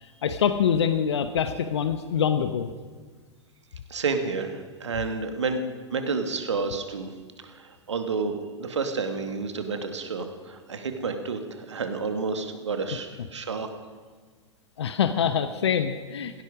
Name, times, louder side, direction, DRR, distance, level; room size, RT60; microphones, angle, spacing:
voice 1, 0.2-2.7 14.8-16.4, left 8 dB, 65° left, 10 dB, 0.9 m, -25 dB
voice 2, 3.9-5.6 5.9-7.1 7.4-13.7, right 4 dB, 70° right, 6 dB, 2.0 m, -30 dB
17.0 x 16.5 x 5.0 m, 1.5 s
figure-of-eight pair, 100°, 15 cm